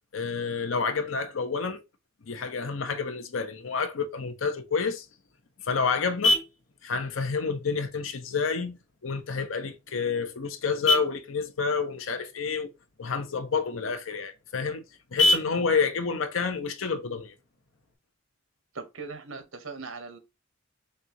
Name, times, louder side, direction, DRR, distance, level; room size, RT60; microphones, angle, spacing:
voice 1, 0.1-1.8 2.3-5.1 5.6-6.4 6.8-12.7 13.0-14.8 15.1-17.3, left 5 dB, 80° left, 0.7 m, -29 dB
Vehicle horn car horn honking, 5.0-18.0, left 2 dB, 65° left, 1.0 m, -33 dB
voice 2, 18.7-20.2, right 4 dB, 80° right, 1.0 m, -39 dB
6.5 x 2.4 x 2.8 m
head